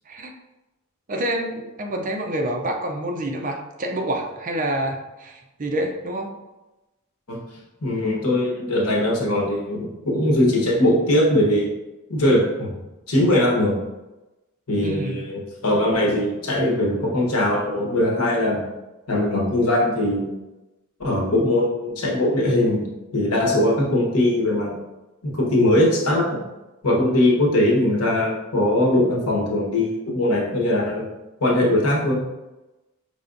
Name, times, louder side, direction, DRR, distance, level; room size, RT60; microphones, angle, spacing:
voice 1, 1.1-6.4 14.8-15.3, right 1 dB, 35° right, 3 dB, 0.5 m, -27 dB
voice 2, 7.8-11.7 12.1-12.7 13.1-13.8 14.7-18.7 19.1-20.3 21.0-22.8 23.1-24.8 25.2-26.4 26.8-31.1 31.4-32.2, left 1 dB, 85° left, -2 dB, 1.1 m, -20 dB
5.3 x 3.3 x 2.6 m, 1.0 s
head